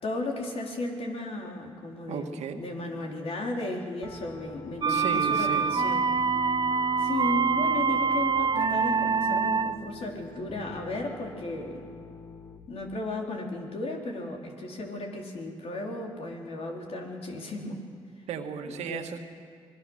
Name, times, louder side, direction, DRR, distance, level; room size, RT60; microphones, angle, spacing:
voice 1, 0.0-6.1 7.0-11.9 12.7-17.8 18.7-19.0, left 2 dB, 60° left, 0 dB, 4.3 m, -35 dB
voice 2, 2.1-2.6 4.9-5.7 18.3-19.2, right 7 dB, 80° right, 5 dB, 1.8 m, -35 dB
Piano, 4.0-12.7, left 4 dB, 20° left, 1.8 m, -46 dB
sound 1, 4.8-9.9, right 5 dB, 40° right, 0.9 m, -25 dB
25.5 x 21.0 x 6.5 m, 2.2 s
supercardioid pair, 60°, 11 cm